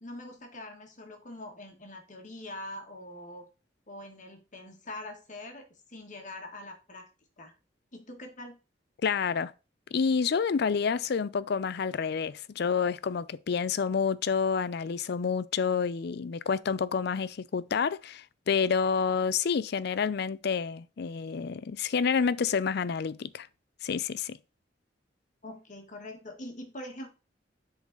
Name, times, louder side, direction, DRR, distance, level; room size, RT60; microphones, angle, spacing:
voice 1, 0.0-3.5 3.9-7.1 7.4-7.5 7.9-8.6 25.4-27.1, left 1 dB, 45° left, 1.4 m, -43 dB
voice 2, 9.0-9.5 9.9-23.5 23.8-24.4, left 6 dB, 60° left, 0.4 m, -28 dB
10.5 x 3.9 x 3.9 m
head